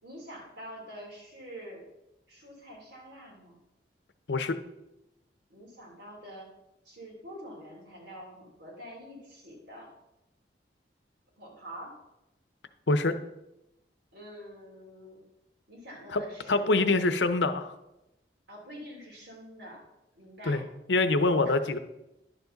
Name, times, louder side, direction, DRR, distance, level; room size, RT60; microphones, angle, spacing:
voice 1, 0.0-1.8 2.3-3.6 5.5-6.5 6.8-9.9 11.4-11.9 14.1-15.2 15.7-17.2 18.5-19.8 20.1-20.7 21.3-21.6, equal, 85° right, -2 dB, 3.4 m, -46 dB
voice 2, 16.5-17.7 20.5-20.6 20.9-21.8, left 3 dB, 90° left, 10 dB, 0.7 m, -25 dB
11.0 x 7.2 x 4.0 m, 0.92 s
head